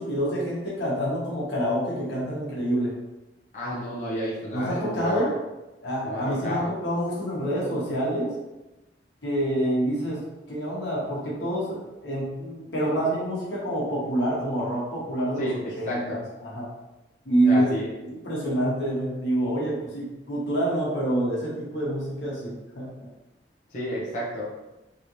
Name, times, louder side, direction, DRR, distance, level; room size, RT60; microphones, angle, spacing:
voice 1, 0.0-2.9 4.5-5.3 5.8-8.3 9.2-10.2 10.5-15.5 15.7-16.7 17.2-17.7 18.0-22.9, right 1 dB, 80° left, -6 dB, 1.3 m, -27 dB
voice 2, 3.5-5.3 6.0-6.7 15.4-16.2 17.4-17.9 23.7-24.5, equal, 45° left, -7 dB, 0.8 m, -31 dB
3.3 x 3.0 x 2.7 m, 1.0 s
head